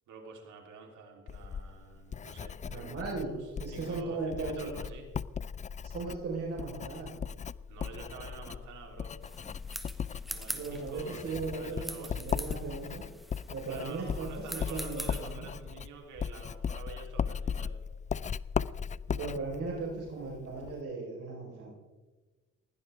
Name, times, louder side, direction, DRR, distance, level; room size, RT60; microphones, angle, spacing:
voice 1, 0.1-5.1 7.7-9.1 10.3-12.3 13.7-17.8, right 4 dB, 80° right, 2 dB, 3.5 m, -48 dB
Writing, 1.3-20.8, left 7 dB, 25° left, 0.4 m, -38 dB
voice 2, 2.7-4.7 5.9-7.1 10.5-13.0 13.5-15.5 19.1-21.7, right 3 dB, 50° right, -3 dB, 4.4 m, -37 dB
sound 1, 9.2-15.3, equal, ahead, 1.3 m, -44 dB
20.0 x 16.5 x 3.5 m, 1.3 s
cardioid pair, 90°, 30 cm